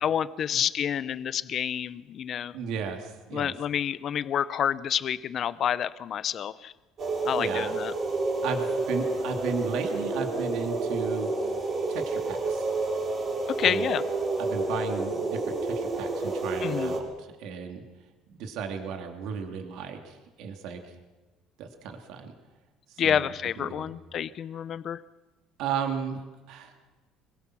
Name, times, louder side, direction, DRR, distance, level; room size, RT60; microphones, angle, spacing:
voice 1, 0.0-2.6 3.3-6.7 7.2-7.9 13.5-14.0 16.6-16.9 23.0-25.0, left 9 dB, 35° left, 16 dB, 0.7 m, -28 dB
voice 2, 2.5-3.5 7.4-7.7 8.4-11.3 11.9-12.7 13.6-13.9 14.4-17.8 18.4-20.8 21.6-22.3 23.0-23.3 23.6-23.9 25.6-26.7, right 6 dB, 60° right, 4 dB, 2.8 m, -35 dB
sound 1, 7.0-17.0, right 3 dB, 30° right, 5.5 m, -29 dB
26.0 x 22.5 x 6.3 m, 1.2 s
cardioid pair, 175°, 0 cm